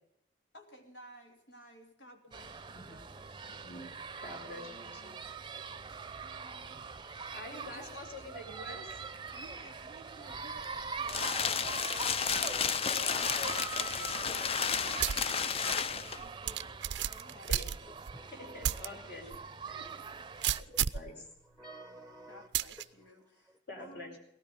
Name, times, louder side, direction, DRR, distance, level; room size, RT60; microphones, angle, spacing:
voice 1, 0.5-3.7 4.5-5.2 6.2-6.9 7.7-7.8 9.3-12.0 14.2-17.7 19.2-19.4 19.7-20.9 22.3-24.2, equal, 85° left, 3 dB, 3.2 m, -56 dB
sound 1, 2.3-20.6, right 5 dB, 25° right, 0.6 m, -43 dB
voice 2, 4.2-5.2 7.3-9.0 12.9-14.5 15.6-16.0 17.5-17.7 18.4-19.2 20.6-20.7 20.9-21.3 23.7-24.1, left 2 dB, 65° left, 2 dB, 5.3 m, -46 dB
sound 2, 10.6-16.3, left 6 dB, 35° left, 0.5 m, -32 dB
voice 3, 12.3-13.3 18.1-18.7 21.6-22.5, right 1 dB, 10° left, 8 dB, 1.0 m, -50 dB
sound 3, 15.0-15.3 15.8-15.9 16.5-18.1 18.6-18.9 19.3-19.4 20.4-21.1 22.5-22.8, right 10 dB, 80° right, 0.5 m, -32 dB
18.5 x 13.0 x 5.3 m, 0.74 s
head